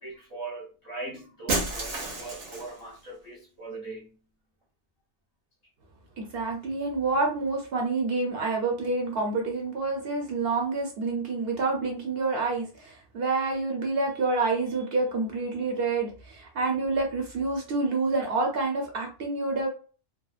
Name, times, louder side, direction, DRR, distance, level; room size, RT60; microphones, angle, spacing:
voice 1, 0.0-4.1, right 2 dB, 40° left, 0.8 m, -40 dB
Shatter, 1.5-2.8, right 2 dB, 80° right, 1.1 m, -30 dB
voice 2, 6.2-19.7, right 3 dB, 60° right, 0.8 m, -28 dB
2.7 x 2.1 x 2.4 m
omnidirectional pair, 1.2 m